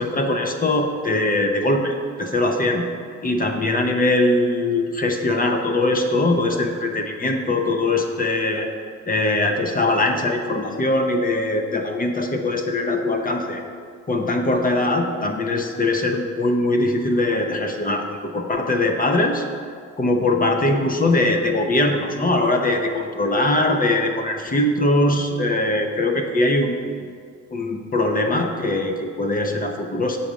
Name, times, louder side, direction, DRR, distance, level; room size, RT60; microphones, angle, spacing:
voice 1, 0.0-2.9 3.2-8.7 9.0-13.6 14.1-19.4 20.0-26.7 27.5-30.2, left 2 dB, 30° left, 4 dB, 0.8 m, -21 dB
6.9 x 4.3 x 6.2 m, 2.1 s
cardioid pair, 90°, 30 cm